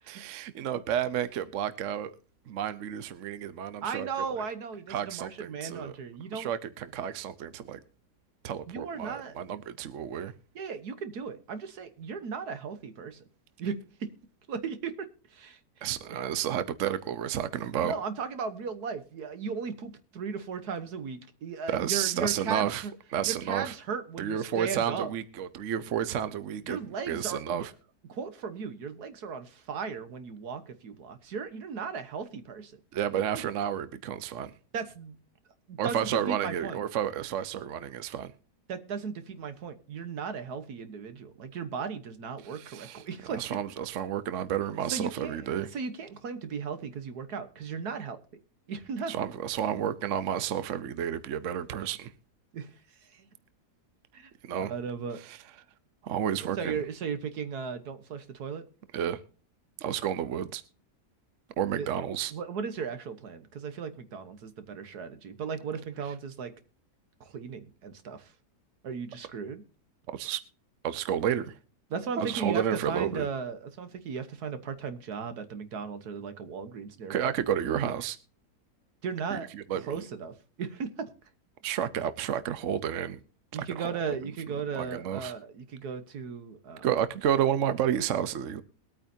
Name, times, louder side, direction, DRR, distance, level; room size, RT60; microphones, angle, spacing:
voice 1, 0.1-2.1 2.5-4.1 4.9-5.9 6.3-7.8 8.4-10.3 15.8-17.9 21.7-22.8 23.1-23.7 24.2-26.8 27.1-27.7 32.9-34.5 35.8-38.3 42.4-45.7 49.1-52.1 54.4-54.7 55.2-55.4 56.0-56.8 58.9-59.2 59.8-60.6 61.6-62.3 70.1-70.4 70.8-71.6 72.2-73.3 77.1-78.2 79.3-80.0 81.6-83.2 83.5-83.9 84.7-85.3 86.8-88.6, right 9 dB, 60° right, 1.0 m, -31 dB
voice 2, 3.8-6.5 8.7-9.4 10.6-13.2 13.6-14.1 14.5-16.2 17.8-22.9 23.2-25.1 26.7-27.7 28.1-32.7 33.3-33.4 34.7-35.2 35.7-36.8 38.7-43.5 44.9-48.2 48.7-49.1 52.5-52.7 53.1-53.3 54.1-54.3 54.6-55.2 56.6-58.7 61.8-61.9 62.3-66.5 67.2-68.3 68.8-69.6 71.9-77.3 79.0-81.1 83.5-86.9, right 6 dB, 75° right, 1.7 m, -36 dB
21.5 x 8.9 x 2.7 m
omnidirectional pair, 1.7 m